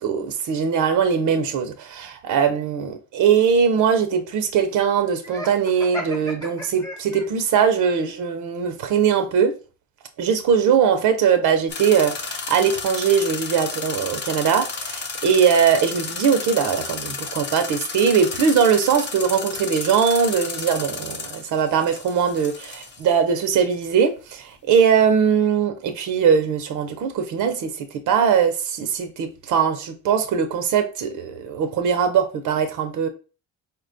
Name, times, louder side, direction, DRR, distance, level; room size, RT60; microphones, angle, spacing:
voice 1, 0.0-9.5 10.2-33.1, right 7 dB, 80° right, 0.6 m, -21 dB
Laughter, 5.2-7.5, equal, 10° left, 0.9 m, -35 dB
sound 1, 11.7-23.2, left 5 dB, 35° left, 0.6 m, -32 dB
4.1 x 2.2 x 2.5 m
cardioid pair, 90°, 30 cm